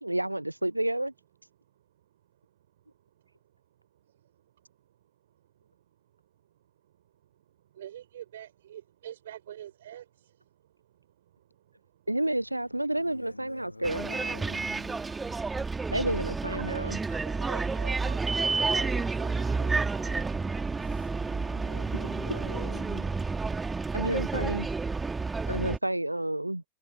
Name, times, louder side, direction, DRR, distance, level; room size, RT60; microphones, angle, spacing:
voice 1, 0.0-1.1 12.1-14.1 15.9-17.0 23.9-24.7 25.5-26.6, right 1 dB, 85° right, 0.4 m, -30 dB
voice 2, 7.8-10.0 16.6-20.3, right 11 dB, 60° right, 4.9 m, -45 dB
voice 3, 12.9-15.4 20.6-23.6, left 2 dB, 85° left, 2.2 m, -47 dB
Bus, 13.8-25.8, right 4 dB, 10° right, 2.1 m, -30 dB
figure-of-eight pair, 90°, 0 cm